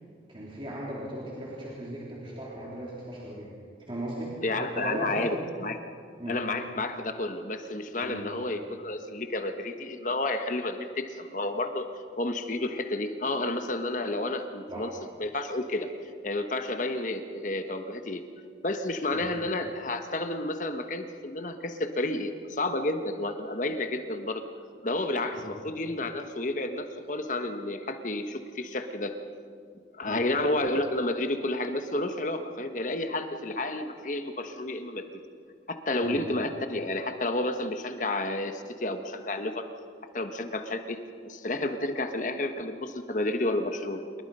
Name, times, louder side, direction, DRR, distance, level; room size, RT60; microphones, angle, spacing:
voice 1, 0.3-3.5 3.9-4.4 4.8-5.3 6.2-6.4 8.0-8.3 14.7-14.9 19.1-19.3 25.4-25.5 30.1-30.2 36.0-36.2, right 1 dB, 30° right, -5 dB, 3.5 m, -37 dB
voice 2, 4.4-5.8 6.3-11.9 12.2-14.9 15.2-15.9 16.2-18.2 18.6-24.4 24.8-29.1 30.0-35.0 35.7-39.7 40.1-41.0 41.2-44.2, left 2 dB, 45° left, 7 dB, 1.2 m, -31 dB
27.5 x 22.5 x 5.5 m, 2.2 s
head